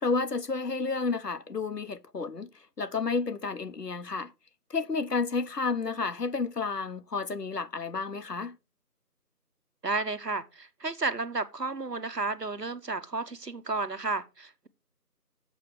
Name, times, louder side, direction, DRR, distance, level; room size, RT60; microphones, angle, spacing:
voice 1, 0.0-2.5 2.8-4.3 4.7-8.6, left 4 dB, 75° left, 1.0 m, -31 dB
voice 2, 9.8-14.7, right 3 dB, 80° right, 1.4 m, -32 dB
7.6 x 6.2 x 5.1 m
figure-of-eight pair, 170°, 48 cm